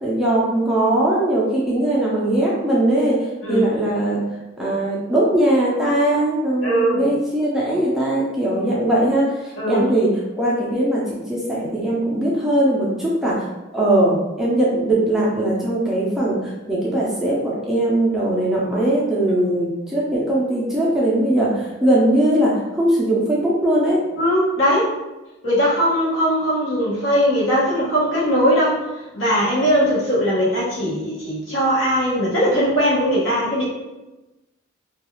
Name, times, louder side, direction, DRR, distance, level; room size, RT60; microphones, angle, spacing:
voice 1, 0.0-3.2 3.5-4.2 4.6-10.1 10.4-13.3 13.7-24.0, right 1 dB, ahead, -7 dB, 0.4 m, -20 dB
voice 2, 6.6-7.0 9.6-9.9 24.2-24.9 25.4-28.8 29.1-33.6, equal, 70° left, -7 dB, 1.0 m, -19 dB
2.3 x 2.3 x 2.9 m, 1.0 s
head